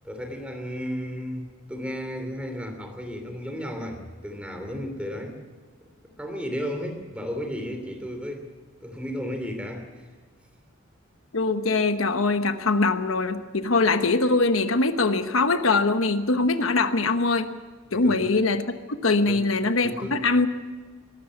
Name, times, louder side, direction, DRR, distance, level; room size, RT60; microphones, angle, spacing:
voice 1, 0.0-5.4 5.8-5.9 6.2-8.5 8.8-10.1 17.9-18.3 19.3-19.5 19.8-20.2, equal, 5° right, 5 dB, 3.0 m, -34 dB
voice 2, 11.3-17.5 17.9-18.6 19.0-20.5, left 3 dB, 80° left, 9 dB, 1.1 m, -22 dB
22.0 x 13.0 x 9.9 m, 1.4 s
head